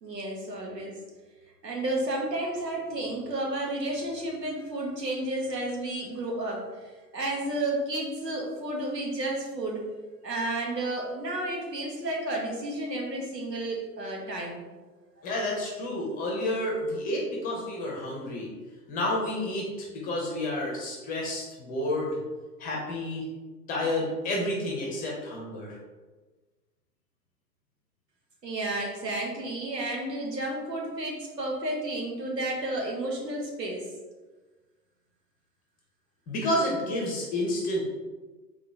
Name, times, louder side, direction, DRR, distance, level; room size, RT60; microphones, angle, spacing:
voice 1, 0.0-1.0 1.6-6.6 7.1-9.8 10.2-14.8 28.4-33.9, right 1 dB, 80° right, -1 dB, 1.2 m, -32 dB
voice 2, 15.2-18.5 18.9-19.7 19.9-22.2 22.6-23.2 23.7-25.8 36.3-37.8, left 1 dB, 15° left, -2 dB, 0.8 m, -30 dB
3.7 x 3.0 x 3.7 m, 1.3 s
figure-of-eight pair, 105°, 49 cm